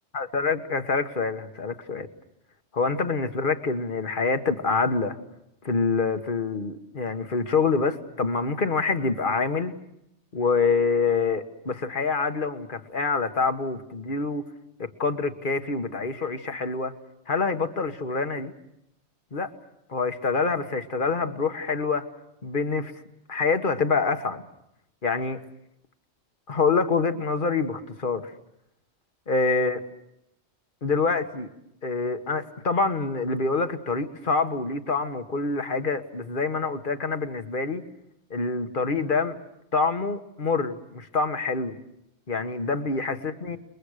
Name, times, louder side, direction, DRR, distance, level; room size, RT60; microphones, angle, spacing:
voice 1, 0.1-2.1 2.7-5.2 5.6-9.7 10.3-14.4 14.8-16.9 17.3-18.5 19.3-19.5 19.9-22.1 22.4-22.9 23.3-24.4 25.0-25.4 26.5-28.3 29.3-29.8 30.8-31.5 31.8-37.8 38.3-39.3 39.7-41.8 42.3-43.6, left 4 dB, 50° left, 8 dB, 1.6 m, -26 dB
29.5 x 22.0 x 6.6 m, 0.82 s
omnidirectional pair, 1.2 m